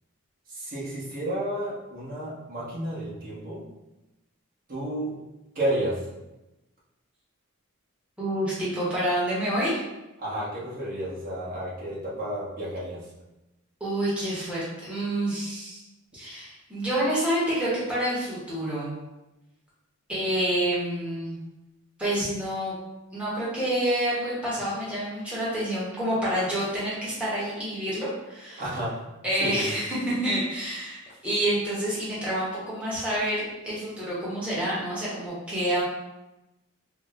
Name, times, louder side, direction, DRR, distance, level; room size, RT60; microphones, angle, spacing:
voice 1, 0.5-3.6 4.7-5.1 5.5-6.0 10.2-13.0 28.6-29.0 29.4-29.8, right 1 dB, 40° right, -7 dB, 1.0 m, -31 dB
voice 2, 8.2-9.8 13.8-15.8 16.1-18.9 20.1-21.4 22.0-22.7 23.1-28.6 29.2-35.8, right 1 dB, 5° right, -9 dB, 0.9 m, -28 dB
4.7 x 2.1 x 2.4 m, 0.99 s
head